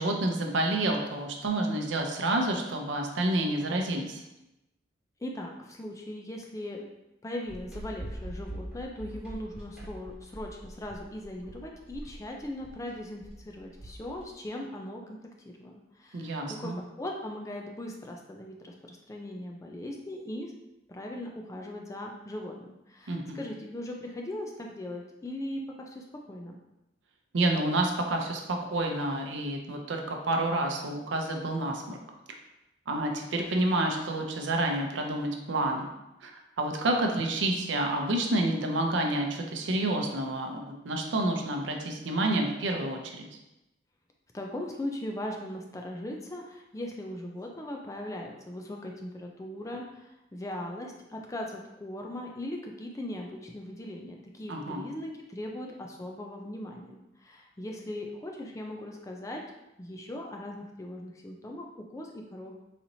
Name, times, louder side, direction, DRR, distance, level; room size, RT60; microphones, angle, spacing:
voice 1, 0.0-4.2 16.1-16.8 23.1-23.4 27.3-32.0 32.9-35.9 36.2-36.3 36.6-43.3 54.5-54.9, right 1 dB, 80° right, 2 dB, 0.6 m, -29 dB
voice 2, 5.2-6.9 7.2-15.2 15.6-16.7 17.0-20.5 20.9-25.6 25.9-26.6 44.3-59.4 59.8-62.5, left 1 dB, 15° left, 1 dB, 0.3 m, -39 dB
sound 1, 7.5-14.3, right 1 dB, 5° right, 1.4 m, -43 dB
4.1 x 2.9 x 2.7 m, 0.92 s
head